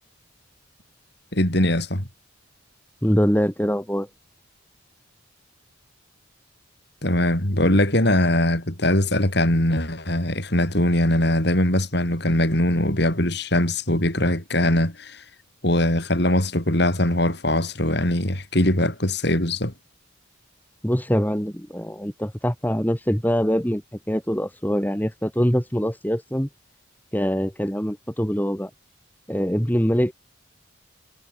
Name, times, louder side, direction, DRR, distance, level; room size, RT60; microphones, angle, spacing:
voice 1, 1.3-2.1 7.0-15.2 15.6-19.7, left 1 dB, 55° left, 5.1 m, -21 dB
voice 2, 3.0-4.1 20.8-23.8 24.1-26.5 27.1-28.7 29.3-30.1, equal, 10° left, 3.9 m, -23 dB
head